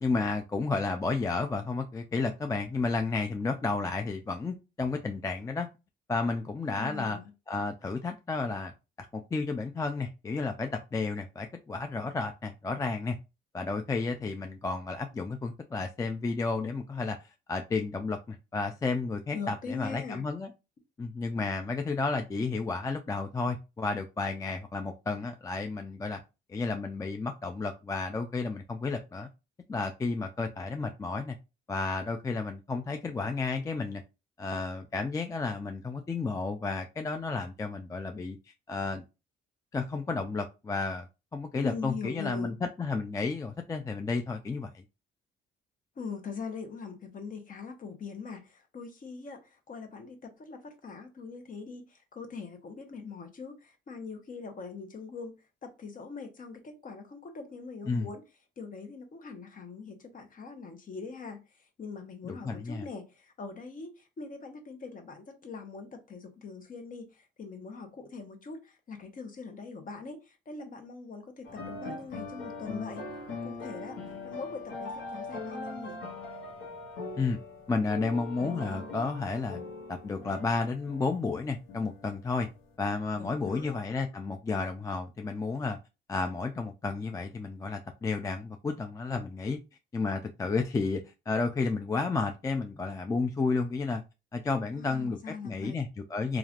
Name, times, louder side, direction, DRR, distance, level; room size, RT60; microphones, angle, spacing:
voice 1, 0.0-5.7 6.1-7.2 7.5-8.7 9.0-13.2 13.5-17.2 17.5-20.5 21.0-26.2 26.5-29.3 29.7-31.4 31.7-34.0 34.4-38.4 38.7-39.0 39.7-41.1 41.3-44.8 57.9-58.1 62.3-62.9 77.2-77.4 77.7-79.6 79.9-82.5 82.8-85.8 86.1-89.6 89.9-94.0 94.3-96.4, left 3 dB, 15° left, 0.3 m, -32 dB
voice 2, 6.6-7.3 19.3-20.2 41.5-42.5 46.0-58.2 58.6-73.0 73.4-74.0 74.2-76.0 83.2-83.8 94.7-95.8, left 4 dB, 45° left, 0.8 m, -42 dB
sound 1, 71.4-82.8, left 3 dB, 90° left, 0.9 m, -41 dB
3.1 x 2.4 x 2.4 m
cardioid pair, 90°, 20 cm